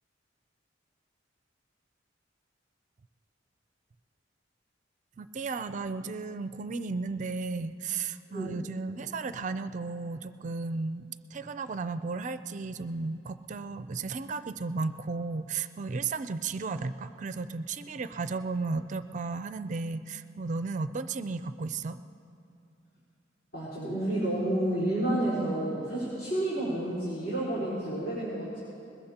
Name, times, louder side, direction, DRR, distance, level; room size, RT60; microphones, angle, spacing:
voice 1, 5.2-22.0, right 4 dB, 40° right, 11 dB, 0.4 m, -34 dB
voice 2, 8.3-8.6 23.5-28.6, right 1 dB, 60° left, -10 dB, 4.4 m, -30 dB
21.0 x 21.0 x 2.9 m, 2.7 s
head